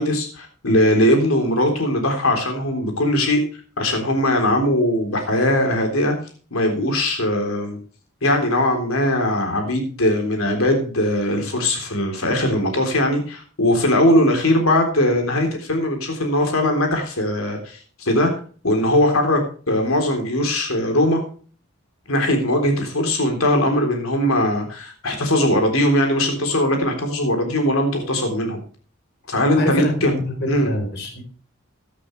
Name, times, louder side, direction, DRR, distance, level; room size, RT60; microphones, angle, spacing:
voice 1, 0.0-3.4 3.8-6.2 6.5-7.8 8.2-18.3 18.6-19.4 19.7-21.2 22.1-28.6 29.3-30.1 30.5-30.7, left 1 dB, 90° left, 4 dB, 3.7 m, -20 dB
voice 2, 29.6-31.2, equal, 55° left, 5 dB, 4.0 m, -26 dB
15.0 x 12.0 x 3.3 m, 0.41 s
head